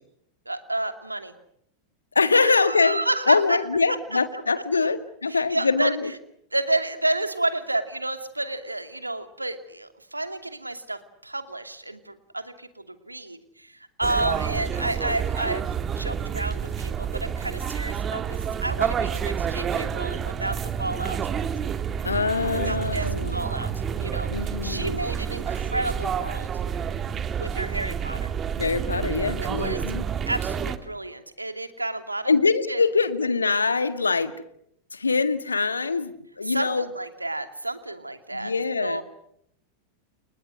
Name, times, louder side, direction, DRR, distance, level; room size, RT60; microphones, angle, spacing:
voice 1, 0.5-1.3 2.3-3.6 4.3-4.4 5.3-5.9 6.5-21.2 22.5-24.3 24.6-26.5 27.4-28.3 29.3-29.8 30.3-32.3 32.7-32.8 36.4-38.5 38.8-39.0, right 2 dB, 85° right, 8 dB, 2.6 m, -30 dB
voice 2, 2.2-3.0 3.3-6.1 22.0-23.5 24.3-25.1 28.6-30.0 32.3-34.3 34.9-36.9 38.3-39.0, left 4 dB, 75° left, 11 dB, 1.9 m, -24 dB
sound 1, 14.0-30.8, right 7 dB, 25° right, 2.3 m, -29 dB
30.0 x 30.0 x 6.5 m, 0.74 s
figure-of-eight pair, 90°, 0 cm